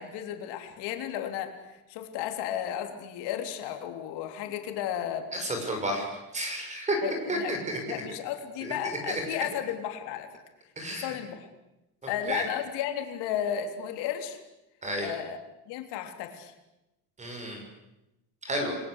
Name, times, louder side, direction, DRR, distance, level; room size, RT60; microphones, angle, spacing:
voice 1, 0.0-1.5 1.9-5.3 7.0-7.6 7.9-10.3 10.9-11.5 12.1-14.4 15.0-15.4 15.7-16.5, left 10 dB, 75° left, 5 dB, 3.6 m, -33 dB
voice 2, 5.3-7.0 7.3-8.0 8.6-8.7 9.1-9.2 10.8-11.2 12.0-12.5 14.8-15.1 17.2-17.6 18.4-18.8, right 1 dB, 15° right, 3 dB, 6.4 m, -32 dB
30.0 x 21.5 x 8.2 m, 0.95 s
cardioid pair, 175°, 41 cm